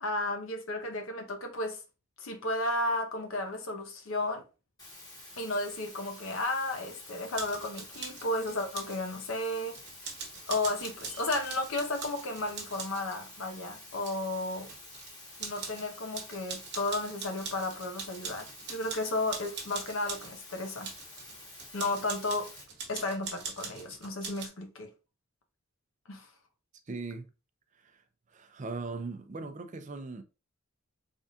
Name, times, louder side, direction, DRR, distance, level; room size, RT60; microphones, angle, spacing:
voice 1, 0.0-1.8 2.2-4.4 5.4-9.8 10.5-14.7 15.4-20.9 21.7-22.5 22.9-24.9 26.1-26.3, left 2 dB, 70° left, 0.8 m, -33 dB
sound 1, 4.8-22.6, left 2 dB, 20° left, 1.3 m, -50 dB
sound 2, 7.3-9.0 9.7-13.2 13.9-15.1 15.4-15.9 16.1-20.3 20.8-24.5, right 5 dB, 50° right, 1.1 m, -42 dB
voice 2, 26.9-27.3 27.8-28.0 28.3-30.2, right 3 dB, 35° right, 0.5 m, -39 dB
4.0 x 3.5 x 2.4 m
head